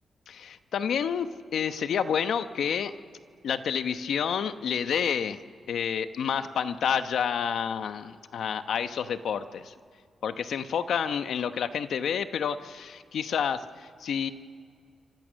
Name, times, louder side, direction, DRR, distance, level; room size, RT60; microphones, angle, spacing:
voice 1, 0.3-2.9 3.4-5.4 5.7-9.7 10.2-14.3, left 7 dB, 80° left, 10 dB, 1.0 m, -29 dB
28.0 x 25.0 x 6.4 m, 2.2 s
cardioid pair, 85°, 0 cm